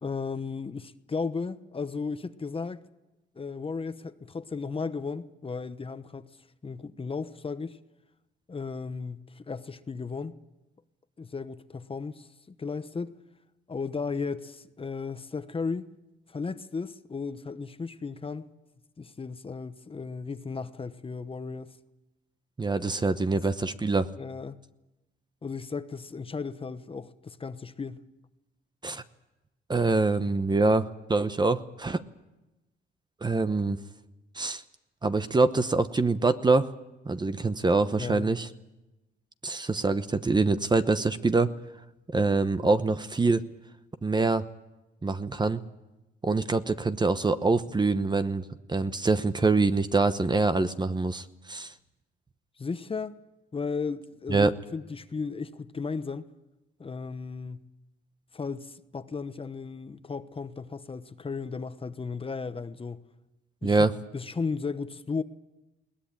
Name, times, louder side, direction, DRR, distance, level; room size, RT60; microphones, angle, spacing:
voice 1, 0.0-2.8 3.3-6.3 6.6-7.8 8.5-10.4 11.2-13.2 13.7-15.9 16.3-18.5 19.0-21.8 24.2-24.6 25.4-28.0 38.0-38.4 52.6-53.2 53.5-56.3 56.8-57.7 58.3-63.0 63.6-63.8 64.1-65.2, left 4 dB, 25° left, 1.0 m, -35 dB
voice 2, 22.6-24.1 28.8-29.0 29.7-32.0 33.2-33.8 34.4-34.6 35.0-36.7 37.0-38.5 39.4-41.5 42.1-43.4 44.0-44.4 45.0-45.6 46.2-51.7 54.3-54.5 63.6-63.9, right 3 dB, 20° right, 1.0 m, -25 dB
21.5 x 18.5 x 8.8 m
cardioid pair, 90°, 20 cm